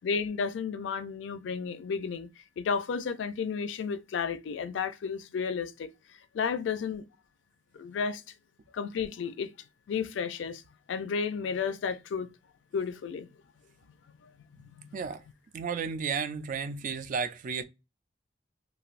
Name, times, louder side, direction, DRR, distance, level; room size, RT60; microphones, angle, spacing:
voice 1, 0.0-5.9 6.3-7.0 7.7-8.2 8.7-9.5 9.9-10.6 10.9-12.3 12.7-13.3 14.2-14.3 14.6-15.0, left 6 dB, 70° left, 0.3 m, -32 dB
voice 2, 15.5-17.6, right 6 dB, 45° right, 0.3 m, -33 dB
3.2 x 2.5 x 2.4 m
head